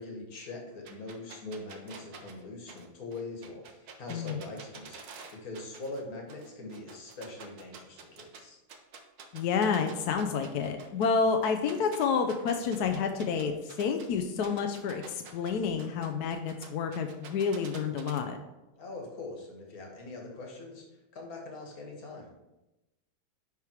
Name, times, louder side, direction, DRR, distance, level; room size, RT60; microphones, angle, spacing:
voice 1, 0.0-5.0 5.3-8.6 18.8-20.8 21.1-22.3, left 2 dB, 50° left, 0 dB, 1.8 m, -42 dB
sound 1, 0.9-6.0 6.3-8.4 8.7-14.1 14.4-18.2, right 5 dB, 60° right, 1.2 m, -48 dB
voice 2, 4.1-4.4 9.3-18.4, left 5 dB, 70° left, 5 dB, 1.0 m, -29 dB
10.5 x 3.6 x 4.5 m, 0.99 s
omnidirectional pair, 2.2 m